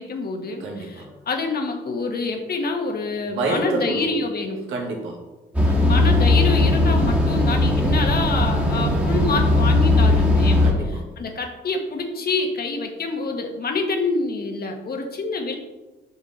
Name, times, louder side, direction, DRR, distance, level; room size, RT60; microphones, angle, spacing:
voice 1, 0.0-4.6 5.7-10.6 11.2-15.6, left 3 dB, 50° left, 3 dB, 1.4 m, -26 dB
voice 2, 0.6-1.1 3.3-4.1 4.7-5.2 10.6-11.2, right 3 dB, 85° right, 0 dB, 1.9 m, -28 dB
sound 1, 5.5-10.7, left 2 dB, 5° right, 1.7 m, -18 dB
6.9 x 6.3 x 4.2 m, 1.1 s
cardioid pair, 90°, 20 cm